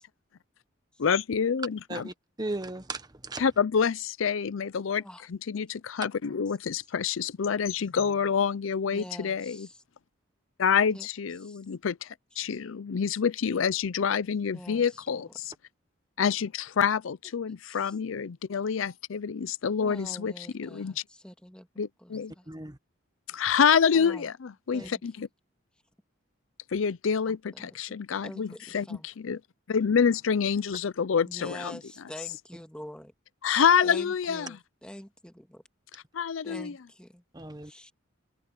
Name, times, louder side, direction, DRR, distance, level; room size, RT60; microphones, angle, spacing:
voice 1, 1.0-2.1 3.4-5.0 5.3-9.7 10.6-15.5 16.2-21.0 21.8-22.3 23.3-25.3 26.7-29.4 29.7-31.8 33.4-34.6 35.9-36.8, left 6 dB, 80° left, 0.5 m, -27 dB
voice 2, 1.9-3.4 22.5-22.8 24.8-24.9 37.3-37.7, right 2 dB, 20° right, 1.2 m, -36 dB
voice 3, 8.9-9.8 10.9-11.1 11.4-11.6 14.5-15.0 17.7-17.9 19.8-22.5 23.9-24.3 24.7-25.2 27.3-27.7 28.2-29.1 31.3-33.1 33.8-35.6 36.4-37.2 37.6-37.9, equal, 5° left, 1.9 m, -45 dB
head